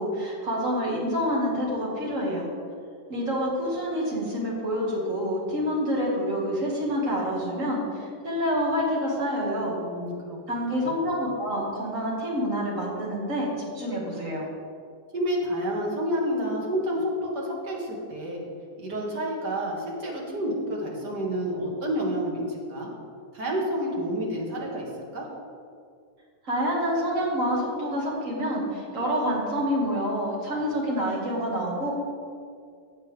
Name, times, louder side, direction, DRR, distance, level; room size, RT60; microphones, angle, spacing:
voice 1, 0.0-2.5 3.1-9.8 10.5-14.4 26.4-31.9, equal, 50° right, -4 dB, 2.4 m, -27 dB
voice 2, 9.7-10.4 10.7-10.9 15.1-18.4 18.8-22.9 23.3-25.3, equal, 85° right, -3 dB, 2.5 m, -29 dB
16.0 x 6.8 x 3.5 m, 2.2 s
omnidirectional pair, 1.7 m